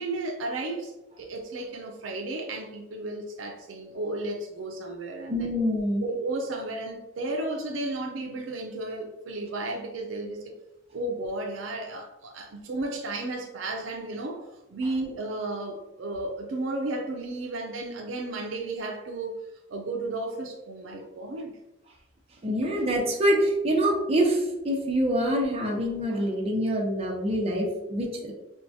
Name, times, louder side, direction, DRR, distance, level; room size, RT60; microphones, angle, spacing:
voice 1, 0.0-5.5 6.0-10.5 10.9-14.4 14.7-19.3 19.7-21.6, right 2 dB, 70° right, 0.5 m, -33 dB
voice 2, 5.3-6.0 22.4-28.3, equal, 30° right, 0.7 m, -25 dB
4.5 x 2.2 x 2.7 m
head